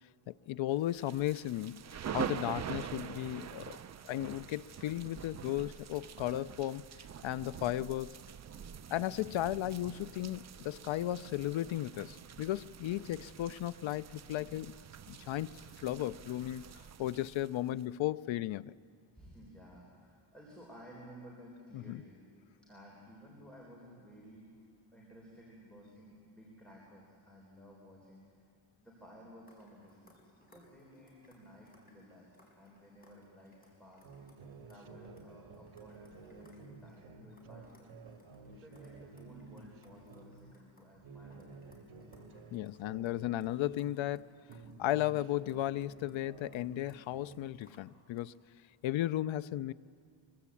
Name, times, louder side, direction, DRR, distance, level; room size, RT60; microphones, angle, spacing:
voice 1, 0.3-1.8 2.1-3.8 4.0-6.8 7.2-8.2 8.9-14.7 15.1-15.5 15.8-18.7 21.7-22.0 42.5-44.3 44.8-48.3 48.8-49.7, left 14 dB, 70° left, 0.6 m, -35 dB
sound 1, 0.9-17.8, right 8 dB, 35° right, 0.5 m, -45 dB
voice 2, 19.1-22.2 22.6-24.7 24.9-28.2 28.8-34.0 34.7-37.9 38.4-41.9, equal, ahead, 3.8 m, -55 dB
sound 2, 29.4-48.4, left 1 dB, 15° left, 4.6 m, -67 dB
sound 3, 34.0-40.5 40.9-44.2 44.5-47.6, right 3 dB, 75° right, 2.1 m, -53 dB
23.5 x 22.5 x 8.4 m
wide cardioid pair, 180°, 49 cm